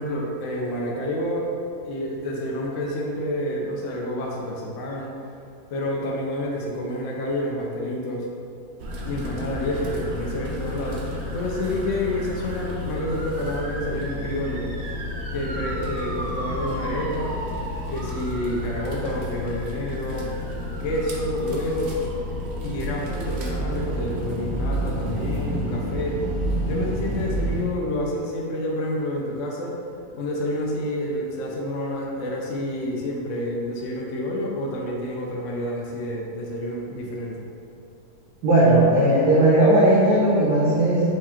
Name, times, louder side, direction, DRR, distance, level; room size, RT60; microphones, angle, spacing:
voice 1, 0.0-1.5 1.8-5.1 5.7-8.3 9.0-14.7 15.3-17.4 17.9-20.3 20.8-22.1 22.6-26.2 26.6-29.8 30.1-37.4, left 1 dB, 65° left, -2 dB, 0.8 m, -29 dB
sound 1, 8.8-27.6, equal, 70° right, 0.6 m, -30 dB
voice 2, 38.4-41.1, right 1 dB, 85° right, -10 dB, 1.5 m, -17 dB
4.7 x 2.4 x 4.3 m, 2.5 s
omnidirectional pair, 1.8 m